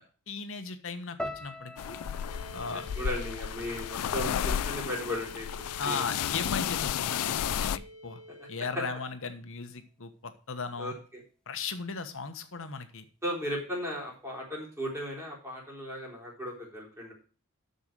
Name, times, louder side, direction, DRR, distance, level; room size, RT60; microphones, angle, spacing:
voice 1, 0.3-2.0 2.5-2.8 5.8-8.2 8.5-10.9 11.5-13.1, left 5 dB, 60° left, 9 dB, 1.2 m, -37 dB
sound 1, 1.2-5.4 5.7-6.4 7.0-7.3, left 1 dB, 5° left, 1.0 m, -45 dB
sound 2, 1.8-7.8, left 9 dB, 90° left, 0.4 m, -32 dB
sound 3, 2.2-8.7, equal, 60° right, 4.5 m, -48 dB
voice 2, 2.7-6.1 10.8-10.9 13.2-17.1, equal, 10° right, -4 dB, 3.8 m, -36 dB
6.9 x 6.6 x 7.5 m, 0.39 s
head